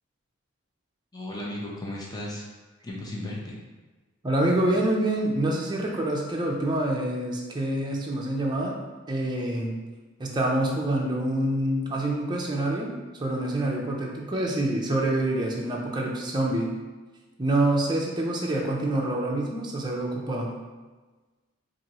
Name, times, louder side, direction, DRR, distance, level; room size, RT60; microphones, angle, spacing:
voice 1, 1.1-2.4 2.8-3.6, left 1 dB, 20° left, -3 dB, 0.6 m, -35 dB
voice 2, 4.2-8.8 9.1-9.7 10.2-12.9 13.2-16.7 17.4-20.5, right 1 dB, 20° right, -1 dB, 0.5 m, -26 dB
4.4 x 2.6 x 2.8 m, 1.3 s
head